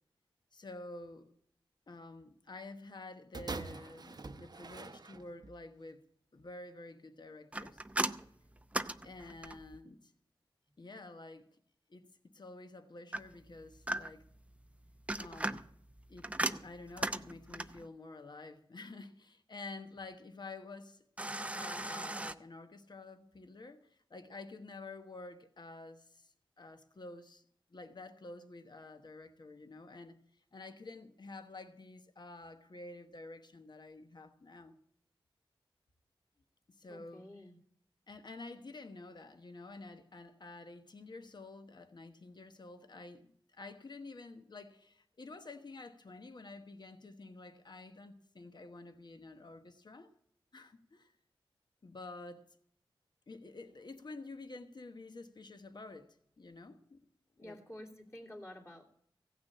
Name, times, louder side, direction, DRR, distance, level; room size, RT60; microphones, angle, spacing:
voice 1, 0.5-1.3 1.9-6.0 6.3-7.8 9.0-10.1 10.8-11.5 11.9-14.2 15.2-15.6 16.1-21.0 21.5-27.4 27.7-30.2 30.5-34.8 36.8-37.3 38.1-50.1 50.5-51.1 51.8-52.4 53.3-57.0 57.4-57.6, left 2 dB, 50° left, 1.1 m, -50 dB
sound 1, 3.3-5.6 6.4-6.5, right 3 dB, 45° right, 0.8 m, -44 dB
sound 2, 7.5-9.8 13.1-14.4 14.9-17.9 21.2-22.3, right 1 dB, 15° right, 0.5 m, -37 dB
voice 2, 36.9-37.6 57.4-59.0, left 1 dB, 30° left, 2.7 m, -50 dB
16.0 x 6.1 x 8.4 m
wide cardioid pair, 80°, 9 cm